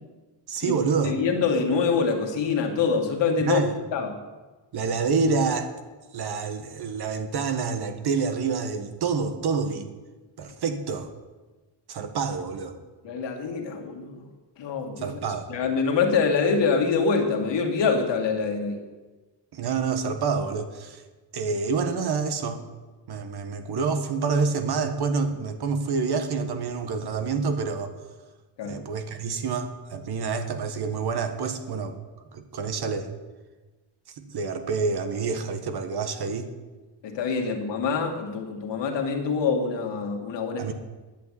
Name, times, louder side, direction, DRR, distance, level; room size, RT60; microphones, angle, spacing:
voice 1, 0.5-1.1 3.4-3.7 4.7-5.7 6.1-9.9 10.4-11.1 11.9-12.7 15.0-15.5 19.5-21.0 21.3-22.6 23.1-27.9 28.6-32.0 32.3-33.1 34.1-36.5 40.6-40.7, right 5 dB, 55° right, 8 dB, 1.4 m, -27 dB
voice 2, 1.0-3.6 3.9-4.2 13.0-14.2 14.6-15.0 15.5-18.8 28.6-28.8 37.0-40.7, left 5 dB, 65° left, 2 dB, 2.3 m, -25 dB
10.0 x 8.5 x 9.8 m, 1.2 s
cardioid pair, 145°, 47 cm